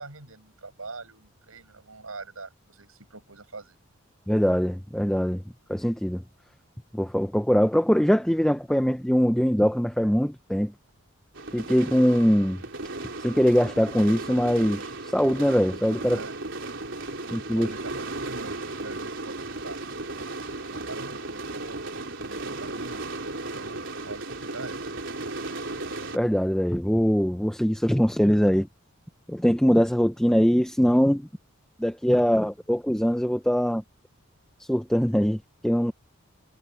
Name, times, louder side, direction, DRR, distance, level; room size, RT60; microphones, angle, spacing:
voice 1, 0.0-3.8 16.0-16.3 17.2-19.9 20.7-23.1 23.5-24.9, right 3 dB, 90° right, 6.8 m, -43 dB
voice 2, 4.3-5.4 5.7-6.2 6.9-10.7 11.5-12.6 13.2-16.2 17.3-17.7 26.1-28.7 29.3-31.3 31.8-33.8 34.6-35.9, equal, 5° left, 0.7 m, -22 dB
sound 1, 11.4-26.2, right 2 dB, 60° right, 4.1 m, -35 dB
head